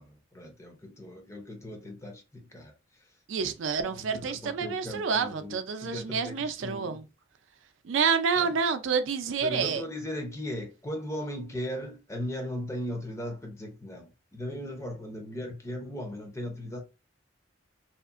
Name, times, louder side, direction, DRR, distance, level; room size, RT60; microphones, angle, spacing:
voice 1, 0.0-3.1 3.8-7.0 8.4-8.6 9.4-16.8, equal, 15° left, 0.5 m, -38 dB
voice 2, 3.3-7.0 7.8-9.8, right 5 dB, 85° right, 0.4 m, -28 dB
2.8 x 2.5 x 2.4 m
head